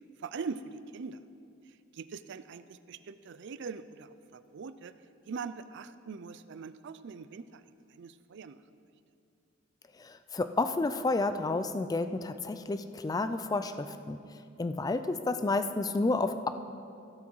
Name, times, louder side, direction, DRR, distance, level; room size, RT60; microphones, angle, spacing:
voice 1, 0.2-1.2 1.9-4.9 5.3-7.6 7.9-8.6, right 5 dB, 60° right, 13 dB, 0.4 m, -42 dB
voice 2, 10.0-14.2 14.6-16.5, left 3 dB, 20° left, 10 dB, 0.3 m, -30 dB
16.5 x 6.2 x 4.6 m, 2.5 s
head